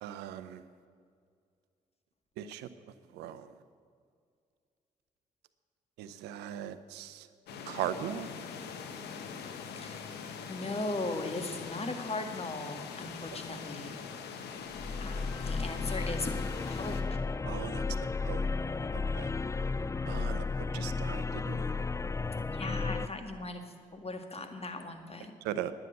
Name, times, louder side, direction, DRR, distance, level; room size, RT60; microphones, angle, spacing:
voice 1, 0.0-0.6 2.4-2.7 3.1-3.5 6.0-7.3 7.7-8.3 17.4-17.8 18.2-18.5 18.9-19.3 20.1-21.6 25.4-25.7, right 11 dB, 85° right, 12 dB, 0.6 m, -39 dB
sound 1, 7.5-17.0, left 6 dB, 80° left, 1.0 m, -43 dB
voice 2, 10.5-14.0 15.0-16.3 16.7-17.2 22.5-23.6 23.9-25.3, left 2 dB, 35° left, 6 dB, 1.8 m, -38 dB
sound 2, 14.8-23.1, left 4 dB, 20° left, 0.4 m, -33 dB
11.0 x 9.0 x 8.0 m, 2.2 s
hypercardioid pair, 40°, 17 cm